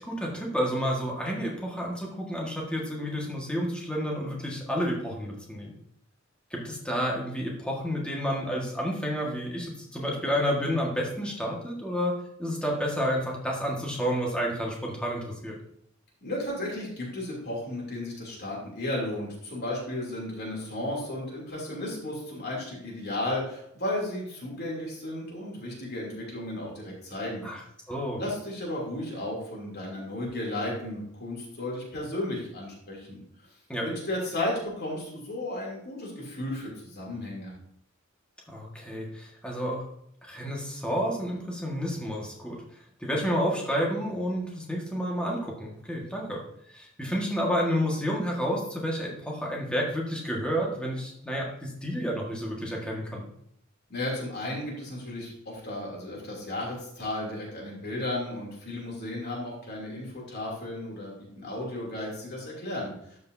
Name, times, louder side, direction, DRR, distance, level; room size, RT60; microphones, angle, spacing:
voice 1, 0.0-5.7 6.5-12.1 12.4-15.5 27.4-27.6 27.9-28.2 33.7-33.8 38.5-39.8 40.3-42.6 43.0-46.4 46.7-53.3, equal, 5° left, -2 dB, 1.6 m, -30 dB
voice 2, 16.2-27.4 28.2-33.2 33.8-37.5 53.9-63.2, left 1 dB, 55° left, -3 dB, 2.9 m, -34 dB
12.5 x 5.4 x 2.7 m, 0.73 s
head